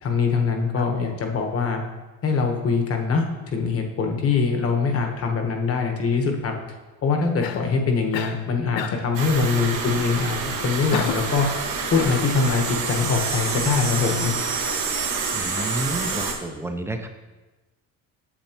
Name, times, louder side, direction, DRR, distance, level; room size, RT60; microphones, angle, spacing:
voice 1, 0.0-1.8 2.2-6.5 7.0-11.5 11.9-14.3, left 5 dB, 40° left, 3 dB, 1.1 m, -23 dB
Cough, 7.4-7.7 8.1-8.4 8.8-9.1 10.9-11.3 11.9-12.7, left 9 dB, 70° left, 0.6 m, -31 dB
sound 1, 9.1-16.3, right 4 dB, 55° right, 1.5 m, -27 dB
voice 2, 15.3-17.1, right 2 dB, 5° right, 6 dB, 0.5 m, -30 dB
8.6 x 6.9 x 2.9 m, 1.2 s
cardioid pair, 130°, 36 cm